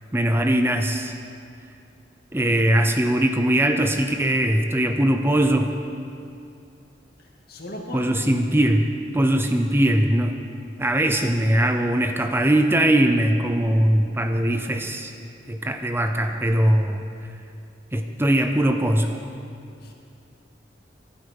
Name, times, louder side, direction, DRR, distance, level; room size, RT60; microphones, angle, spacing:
voice 1, 0.1-1.1 2.3-5.7 7.9-8.9 9.1-10.4 10.8-15.1 15.5-17.0 17.9-19.2, right 1 dB, 15° right, 5 dB, 0.7 m, -21 dB
voice 2, 7.2-8.2 19.8-19.9, equal, 60° left, 0 dB, 2.2 m, -37 dB
17.5 x 12.0 x 5.4 m, 2.5 s
head